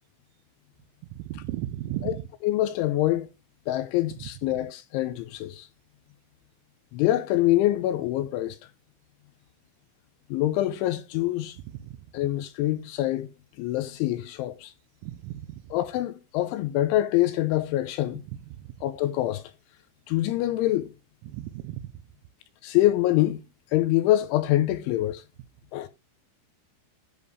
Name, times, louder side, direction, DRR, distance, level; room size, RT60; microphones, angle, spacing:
voice 1, 1.1-2.2 11.8-11.9 15.0-15.7 18.6-18.7 21.3-21.9, right 14 dB, 90° right, 3.5 m, -35 dB
voice 2, 2.4-3.3 3.7-5.7 6.9-8.6 10.3-11.6 12.1-13.3 13.6-14.7 15.7-18.2 18.8-19.4 20.1-20.9 22.6-23.4 23.7-25.2 25.7-25.9, left 14 dB, 80° left, 2.9 m, -25 dB
10.5 x 5.2 x 4.9 m
omnidirectional pair, 5.9 m